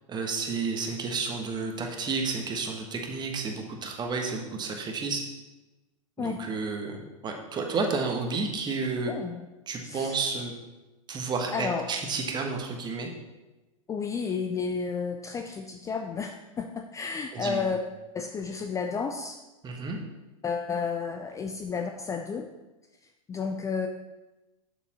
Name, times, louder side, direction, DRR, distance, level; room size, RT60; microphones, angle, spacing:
voice 1, 0.1-5.3 6.2-9.1 9.7-10.5 11.1-13.1 17.3-17.7 19.6-20.0, right 4 dB, 25° right, 3 dB, 1.4 m, -31 dB
voice 2, 9.1-9.5 9.8-10.2 11.5-11.8 13.9-17.8 18.1-19.4 20.4-22.5 23.3-23.9, left 5 dB, 15° left, 4 dB, 0.5 m, -31 dB
7.1 x 6.9 x 4.3 m, 1.1 s
hypercardioid pair, 105°, 18 cm